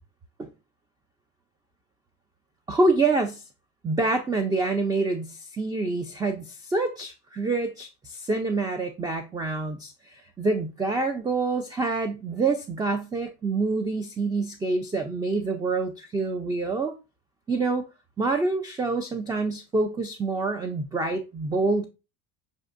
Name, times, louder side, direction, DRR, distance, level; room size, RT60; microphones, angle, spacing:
voice 1, 2.7-3.4 3.8-17.0 17.5-17.9 18.2-21.9, right 3 dB, 10° right, 0.3 m, -26 dB
6.2 x 2.6 x 2.4 m
supercardioid pair, 110°, 34 cm